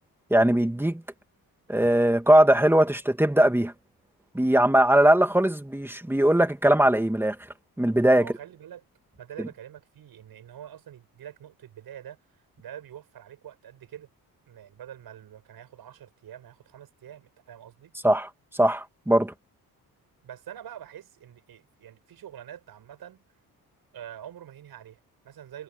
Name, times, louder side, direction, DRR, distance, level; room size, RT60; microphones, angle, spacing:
voice 1, 0.3-1.0 1.7-3.7 4.3-7.4 7.8-8.3 18.0-19.3, right 1 dB, 5° right, 2.6 m, -20 dB
voice 2, 8.2-8.8 9.1-14.1 14.5-17.9 20.2-23.2 23.9-25.6, right 10 dB, 80° right, 7.3 m, -45 dB
cardioid pair, 90°, 36 cm